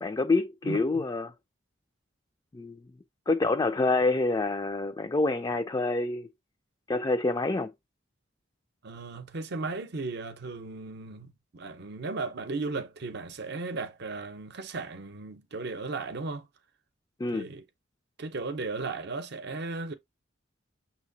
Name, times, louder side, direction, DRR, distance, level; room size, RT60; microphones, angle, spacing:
voice 1, 0.0-1.3 2.5-2.8 3.3-6.3 6.9-7.7 17.2-17.5, left 3 dB, 20° left, 0.3 m, -27 dB
voice 2, 0.6-1.0 8.8-16.5 17.3-17.6 18.2-19.9, right 3 dB, 60° right, 0.7 m, -36 dB
6.4 x 2.9 x 2.7 m
head